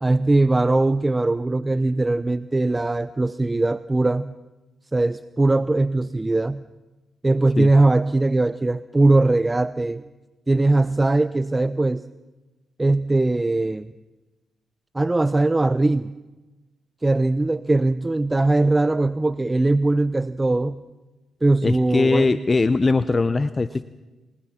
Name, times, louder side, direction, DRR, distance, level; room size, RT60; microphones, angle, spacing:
voice 1, 0.0-4.3 4.9-6.6 7.2-10.0 10.5-12.0 12.8-13.9 14.9-16.2 17.0-20.8 21.4-22.4, right 2 dB, 20° right, 15 dB, 0.7 m, -20 dB
voice 2, 21.6-23.8, left 3 dB, 35° left, 13 dB, 0.7 m, -20 dB
29.0 x 19.0 x 5.9 m, 1.1 s
hypercardioid pair, 45°, 0 cm